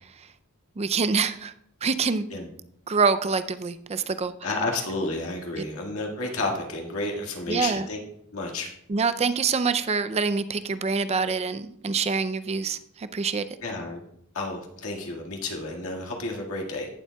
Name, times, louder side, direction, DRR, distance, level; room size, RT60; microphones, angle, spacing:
voice 1, 0.8-1.5 1.8-2.3 2.9-4.3 7.5-7.9 8.9-13.4, right 5 dB, 30° right, 12 dB, 0.4 m, -25 dB
voice 2, 4.4-8.0 8.3-8.7 13.6-14.0 14.3-16.9, left 2 dB, 70° left, 0 dB, 1.9 m, -31 dB
17.0 x 7.3 x 2.3 m, 0.73 s
head